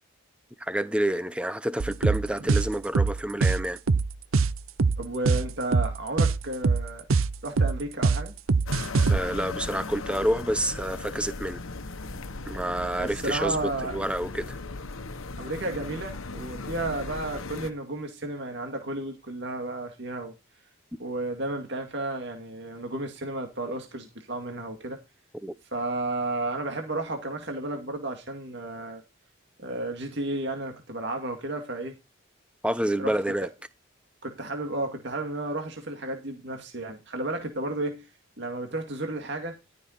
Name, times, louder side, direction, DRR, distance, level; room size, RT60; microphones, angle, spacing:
voice 1, 0.6-3.8 9.1-11.6 12.5-13.6 13.8-14.6 25.4-25.5 32.6-33.5, right 1 dB, 5° right, 0.7 m, -28 dB
sound 1, 1.8-9.2, right 4 dB, 75° right, 0.6 m, -23 dB
voice 2, 5.0-7.1 7.4-8.3 13.0-14.0 15.4-20.3 21.0-25.0 25.7-29.0 29.6-32.0 33.0-33.2 34.2-38.1 38.4-39.6, right 2 dB, 55° right, 2.1 m, -32 dB
sound 2, 8.7-17.7, left 3 dB, 75° left, 1.2 m, -37 dB
13.5 x 6.7 x 4.3 m
head